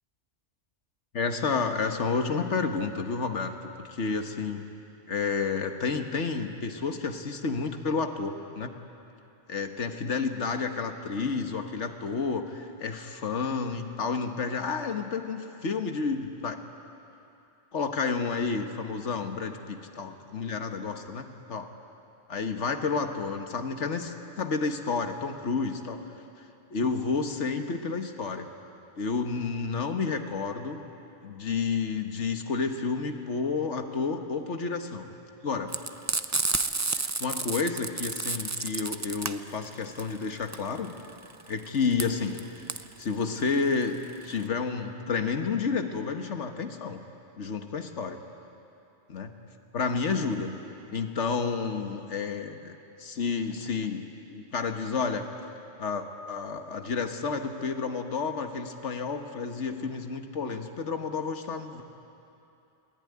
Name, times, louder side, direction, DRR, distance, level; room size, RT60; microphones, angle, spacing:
voice 1, 1.1-4.6 5.1-8.7 9.5-16.6 17.7-21.7 22.3-26.0 26.4-26.5 26.7-28.5 29.0-30.8 31.2-35.1 35.4-35.7 36.9-40.9 41.5-42.4 43.0-44.0 44.2-47.0 47.4-48.2 49.1-49.3 49.7-50.5 50.9-55.3 55.8-61.8, left 4 dB, 85° left, 6 dB, 1.7 m, -30 dB
Frying (food), 35.7-44.4, right 3 dB, 25° right, 0.4 m, -31 dB
22.5 x 18.0 x 9.6 m, 2.8 s
omnidirectional pair, 1.2 m